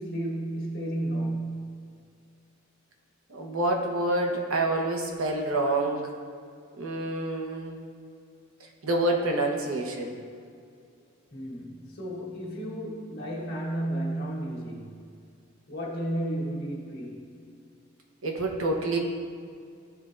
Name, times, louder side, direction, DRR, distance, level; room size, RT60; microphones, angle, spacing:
voice 1, 0.0-2.0 11.3-15.0 15.7-17.3, right 1 dB, 50° left, -4 dB, 1.5 m, -33 dB
voice 2, 3.3-6.1 6.8-7.8 8.8-10.2 18.2-19.0, right 2 dB, 75° right, 1 dB, 1.0 m, -27 dB
13.0 x 4.4 x 2.6 m, 2.3 s
head